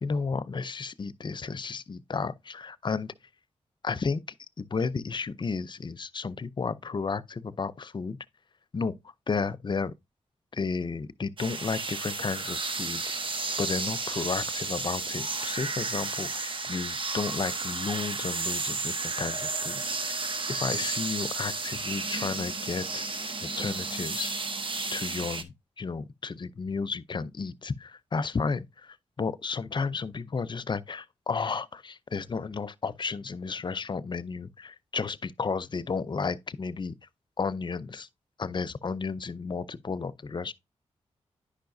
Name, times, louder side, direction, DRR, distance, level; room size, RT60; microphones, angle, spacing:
voice 1, 0.0-3.1 3.8-4.2 4.6-8.2 8.7-8.9 9.3-9.9 10.5-13.2 13.6-23.0 23.4-24.3 24.9-36.9 37.4-38.1 38.4-40.5, left 4 dB, 40° left, 0.6 m, -33 dB
sound 1, 11.4-25.4, right 3 dB, 45° right, 0.9 m, -32 dB
10.0 x 5.7 x 2.6 m
cardioid pair, 65°, 12 cm